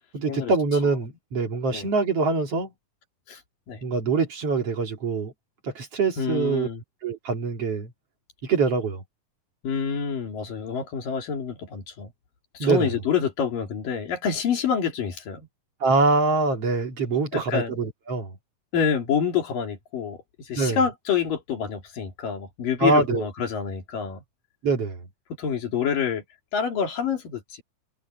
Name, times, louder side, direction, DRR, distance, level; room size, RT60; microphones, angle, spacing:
voice 1, 0.1-2.7 3.8-5.3 5.6-6.7 7.0-7.9 8.4-9.0 12.6-12.9 15.8-18.4 20.5-20.8 22.8-23.2 24.6-25.0, right 4 dB, 50° right, 3.5 m, -24 dB
voice 2, 6.2-6.8 9.6-12.1 12.5-15.5 17.3-17.8 18.7-24.2 25.4-26.2 26.5-27.6, left 7 dB, 85° left, 4.9 m, -27 dB
omnidirectional pair, 3.8 m